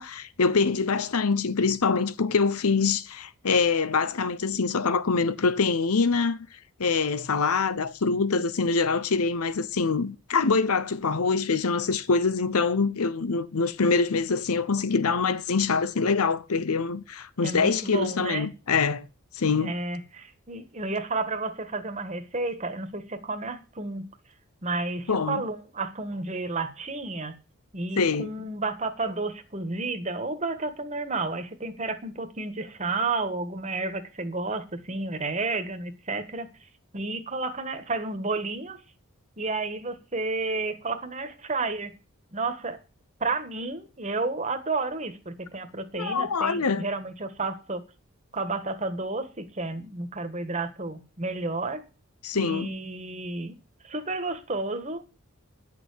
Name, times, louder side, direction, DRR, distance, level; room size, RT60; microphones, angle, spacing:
voice 1, 0.0-6.5 6.8-19.1 19.3-19.7 25.1-25.4 28.0-28.3 45.9-46.9 52.2-52.7, left 4 dB, 80° left, 0.8 m, -24 dB
voice 2, 17.4-18.5 19.6-24.0 24.6-27.3 27.7-36.5 36.9-38.8 39.4-41.9 42.3-42.8 43.2-47.8 48.3-51.8 52.3-53.6 53.8-55.0, right 3 dB, 30° right, 1.5 m, -31 dB
10.5 x 6.8 x 8.4 m
head